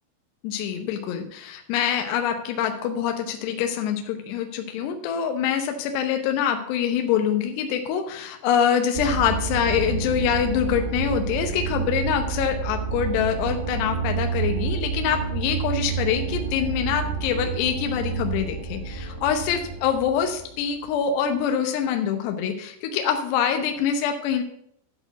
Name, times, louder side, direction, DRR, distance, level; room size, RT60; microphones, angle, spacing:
voice 1, 0.4-24.4, left 8 dB, 75° left, 4 dB, 2.7 m, -25 dB
sound 1, 9.0-20.9, right 6 dB, 75° right, 2.5 m, -29 dB
11.0 x 4.4 x 7.8 m, 0.71 s
omnidirectional pair, 5.5 m